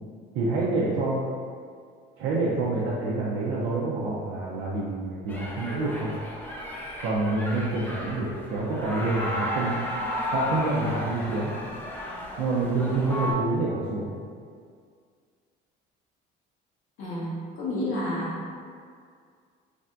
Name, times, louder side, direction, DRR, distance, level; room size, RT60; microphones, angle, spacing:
voice 1, 0.3-1.3 2.2-6.1 7.0-9.8 10.3-11.5 12.4-14.1, right 2 dB, 85° right, -6 dB, 0.5 m, -27 dB
sound 1, 5.3-13.3, left 1 dB, 10° left, 0.5 m, -34 dB
voice 2, 17.0-18.5, left 1 dB, 80° left, -7 dB, 0.8 m, -30 dB
3.3 x 2.2 x 2.5 m, 2.1 s
cardioid pair, 95°, 20 cm